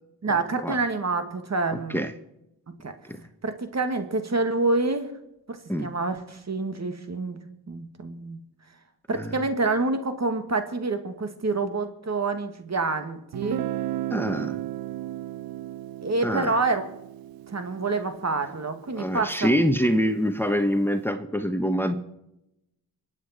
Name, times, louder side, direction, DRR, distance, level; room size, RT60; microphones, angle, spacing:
voice 1, 0.2-2.0 2.7-2.9 3.4-5.1 5.5-7.4 7.7-8.4 9.1-13.7 16.0-16.9 17.5-19.5, right 3 dB, 45° right, 8 dB, 2.2 m, -27 dB
Guitar, 13.3-19.1, right 14 dB, 65° right, 0.5 m, -35 dB
voice 2, 14.1-14.6 16.2-16.5 19.0-22.0, equal, 5° left, 8 dB, 1.3 m, -25 dB
24.5 x 8.8 x 4.4 m, 0.85 s
cardioid pair, 50°, 38 cm